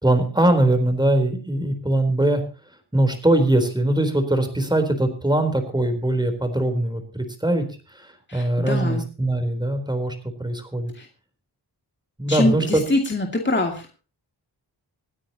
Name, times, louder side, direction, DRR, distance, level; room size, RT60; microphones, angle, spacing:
voice 1, 0.0-2.4 2.9-10.1 10.4-10.9 12.2-12.8, right 1 dB, 10° right, 7 dB, 4.0 m, -21 dB
voice 2, 8.3-9.1 10.9-11.1 12.3-14.0, left 2 dB, 25° left, 2 dB, 2.5 m, -24 dB
27.0 x 9.6 x 2.9 m, 0.35 s
wide cardioid pair, 100°, 41 cm